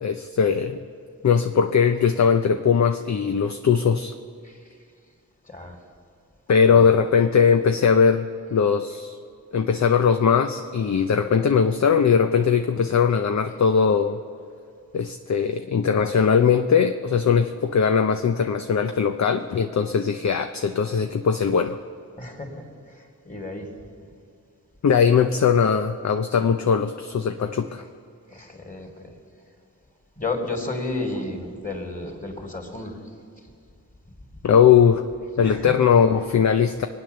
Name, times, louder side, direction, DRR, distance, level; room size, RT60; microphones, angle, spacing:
voice 1, 0.0-0.8 1.2-4.1 6.5-9.2 9.5-14.2 14.9-21.8 24.8-27.8 34.4-35.0 35.4-36.9, left 6 dB, 50° left, 7 dB, 0.7 m, -20 dB
voice 2, 5.5-5.8 6.7-6.9 22.2-23.7 28.3-29.1 30.2-33.0 35.4-35.6, left 2 dB, 20° left, 3 dB, 3.0 m, -32 dB
21.5 x 8.8 x 6.8 m, 2.3 s
supercardioid pair, 40°, 37 cm